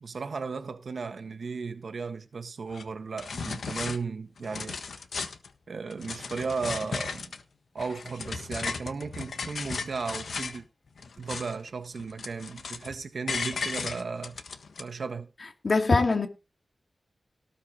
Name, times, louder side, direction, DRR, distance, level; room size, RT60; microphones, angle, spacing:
voice 1, 0.0-4.8 5.7-7.4 7.7-10.6 11.2-14.4 14.8-15.3, right 4 dB, 70° right, 1.5 m, -35 dB
sound 1, 2.7-2.8 3.2-4.0 4.4-5.5 5.9-7.4 7.8-10.6 11.0-11.7 12.0-12.9 13.3-14.8, left 5 dB, 80° left, 1.4 m, -35 dB
voice 2, 15.6-16.3, left 3 dB, 50° left, 2.5 m, -22 dB
18.0 x 6.1 x 5.0 m
wide cardioid pair, 85°, 0 cm